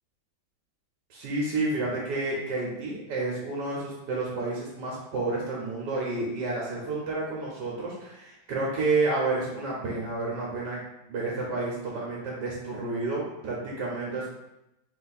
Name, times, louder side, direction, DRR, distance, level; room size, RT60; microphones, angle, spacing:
voice 1, 1.1-10.8 11.1-14.3, right 3 dB, 65° right, -4 dB, 1.4 m, -30 dB
3.7 x 2.7 x 4.0 m, 0.88 s
omnidirectional pair, 2.0 m